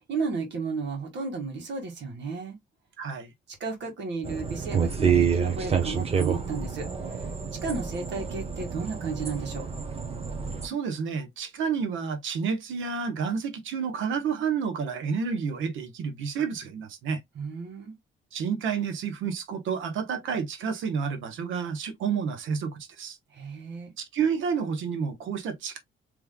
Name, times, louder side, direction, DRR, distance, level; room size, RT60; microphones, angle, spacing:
voice 1, 0.1-2.6 3.6-7.3 7.6-9.6 17.4-17.9 23.3-23.9, right 4 dB, 65° right, 1.8 m, -33 dB
voice 2, 3.0-3.3 10.6-17.2 18.3-23.2 24.0-25.8, right 6 dB, 80° right, 1.1 m, -30 dB
sound 1, 4.2-10.7, right 6 dB, 30° right, 1.0 m, -28 dB
3.5 x 3.2 x 2.2 m
cardioid pair, 90°, 20 cm